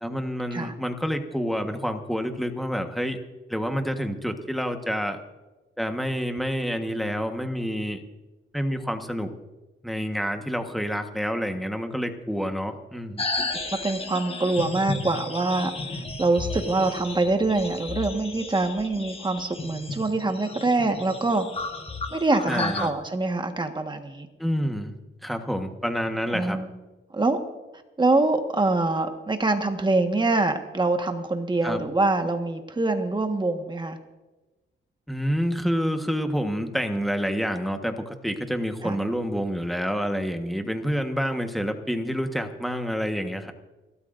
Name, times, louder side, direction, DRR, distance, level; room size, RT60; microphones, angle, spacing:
voice 1, 0.0-3.2 3.5-5.2 5.8-8.0 8.5-9.3 9.8-13.2 22.5-22.9 24.4-24.9 25.2-26.6 31.6-31.8 35.1-43.5, equal, ahead, 5 dB, 1.3 m, -28 dB
sound 1, 13.2-22.9, left 3 dB, 25° left, 1.4 m, -33 dB
voice 2, 13.7-21.5 22.1-24.3 26.3-26.7 27.1-27.4 28.0-34.0 38.8-39.0, right 2 dB, 20° right, 5 dB, 1.4 m, -25 dB
29.5 x 13.0 x 2.6 m, 1.1 s
cardioid pair, 115°, 21 cm